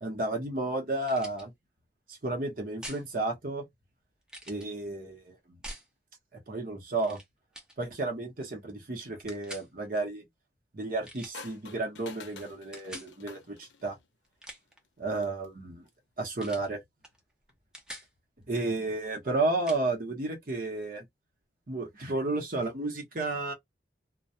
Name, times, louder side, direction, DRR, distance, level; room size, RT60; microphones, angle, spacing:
voice 1, 0.0-1.5 2.1-3.7 4.5-5.6 6.3-7.2 7.8-10.2 10.7-14.0 15.0-15.8 16.2-16.8 18.5-21.0 21.7-23.5, right 2 dB, 50° right, 0.9 m, -32 dB
sound 1, 1.1-1.4 2.8-3.1 4.3-4.7 5.6-5.9 7.0-7.3 7.5-7.8 9.3-9.7 11.0-11.4 12.7-13.1 14.2-14.8 16.4-16.7 17.0-17.2 17.5-18.1 19.7-19.8, equal, 5° right, 0.5 m, -44 dB
sound 2, 11.3-14.1 15.1-15.5, left 4 dB, 75° left, 0.6 m, -48 dB
2.2 x 2.2 x 2.7 m
head